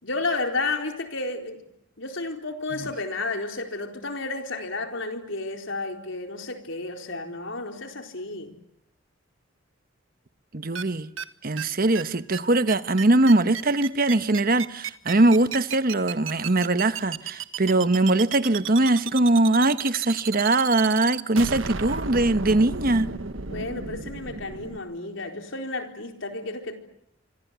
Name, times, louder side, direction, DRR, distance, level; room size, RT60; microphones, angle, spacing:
voice 1, 0.0-1.6 2.0-8.5 23.5-26.7, left 3 dB, 75° left, 4.3 m, -32 dB
voice 2, 10.5-11.1 11.4-23.1, right 2 dB, 45° right, 1.2 m, -21 dB
sound 1, 10.7-10.8 11.2-11.3 11.6-11.7 11.9-12.0 12.3-12.4 12.7-24.8, right 6 dB, 80° right, 1.5 m, -33 dB
26.5 x 25.5 x 8.3 m
head